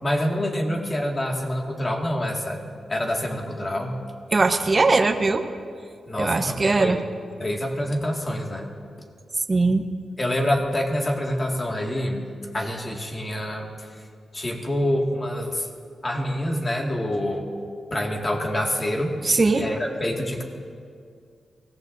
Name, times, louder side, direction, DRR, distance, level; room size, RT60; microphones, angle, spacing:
voice 1, 0.0-2.6 2.9-4.0 6.1-7.0 7.4-8.7 10.2-12.3 12.5-13.7 14.3-15.7 16.0-17.5 17.9-20.4, left 1 dB, 30° left, 1 dB, 2.0 m, -26 dB
voice 2, 4.3-5.4 6.2-7.0 9.5-9.8 19.2-19.7, right 3 dB, 30° right, 5 dB, 0.8 m, -20 dB
24.5 x 17.5 x 2.7 m, 2.2 s
cardioid pair, 95°, 0 cm